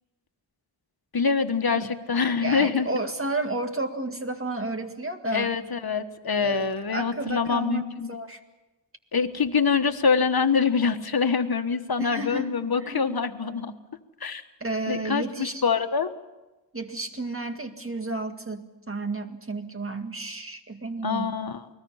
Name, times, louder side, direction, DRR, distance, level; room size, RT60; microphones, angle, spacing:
voice 1, 1.1-2.9 5.3-8.1 9.1-13.7 14.2-14.4 14.9-16.1 21.0-21.6, left 5 dB, 55° left, 7 dB, 1.4 m, -25 dB
voice 2, 2.4-5.5 6.4-8.4 12.0-13.2 14.6-15.6 16.7-21.4, right 2 dB, 30° right, 6 dB, 2.0 m, -32 dB
29.0 x 20.0 x 5.7 m, 1.1 s
wide cardioid pair, 95°, 45 cm